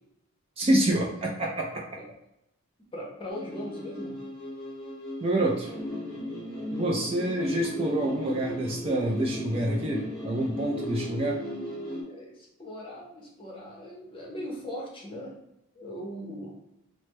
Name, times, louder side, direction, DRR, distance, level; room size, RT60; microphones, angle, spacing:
voice 1, 0.6-1.9 5.2-5.7 6.7-11.4, right 1 dB, 25° right, -1 dB, 0.4 m, -27 dB
voice 2, 2.9-4.2 12.0-15.4 15.7-16.6, equal, 25° left, -3 dB, 0.7 m, -39 dB
sound 1, 3.3-12.0, left 1 dB, ahead, 1.1 m, -36 dB
3.1 x 2.0 x 3.1 m, 0.85 s
head